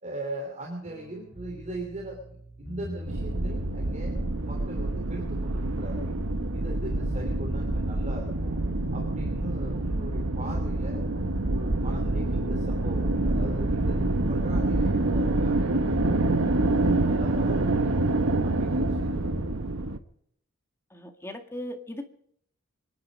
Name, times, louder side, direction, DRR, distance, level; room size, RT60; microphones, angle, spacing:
voice 1, 0.0-4.2 4.5-6.2 6.5-8.6 8.9-11.0 11.4-16.3 16.6-19.3, right 1 dB, 35° right, 1 dB, 3.1 m, -40 dB
sound 1, 0.8-19.5, left 1 dB, 5° right, 5.4 m, -40 dB
sound 2, 3.1-20.0, right 2 dB, 65° right, 1.2 m, -27 dB
voice 2, 20.9-22.1, left 1 dB, 10° left, 5 dB, 1.8 m, -38 dB
25.0 x 10.5 x 5.1 m, 0.68 s
head